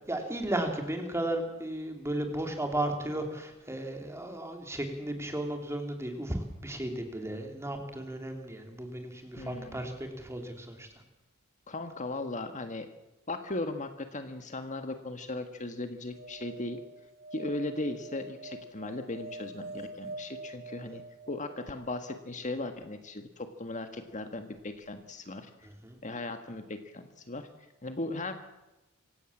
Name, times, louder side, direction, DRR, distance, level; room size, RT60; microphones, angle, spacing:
voice 1, 0.1-10.9 25.6-26.0, right 1 dB, 10° right, 4 dB, 3.4 m, -35 dB
voice 2, 9.4-9.8 11.7-12.9 13.3-16.8 17.3-21.0 21.3-25.7 26.0-27.5 27.8-28.3, left 2 dB, 35° left, 7 dB, 1.6 m, -37 dB
sound 1, 16.1-22.3 24.6-24.7 24.9-25.0, right 2 dB, 45° right, 1.0 m, -45 dB
27.0 x 17.0 x 7.5 m, 1.0 s
head